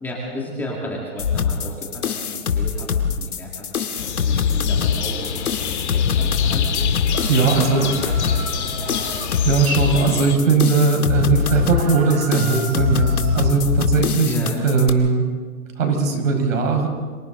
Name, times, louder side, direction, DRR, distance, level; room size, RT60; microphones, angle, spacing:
voice 1, 0.0-6.9 7.3-9.0 14.2-14.6, equal, 5° left, -4 dB, 2.4 m, -34 dB
sound 1, 1.2-14.9, left 6 dB, 80° left, 2.3 m, -23 dB
sound 2, 3.9-10.4, left 8 dB, 50° left, 2.0 m, -28 dB
sound 3, 7.1-9.3 11.4-13.5, right 5 dB, 20° right, 1.6 m, -36 dB
voice 2, 7.3-7.9 9.4-14.3 14.6-15.3 15.8-16.9, right 4 dB, 60° right, 3 dB, 5.7 m, -19 dB
29.0 x 26.0 x 4.0 m, 1.5 s
hypercardioid pair, 160°, 44 cm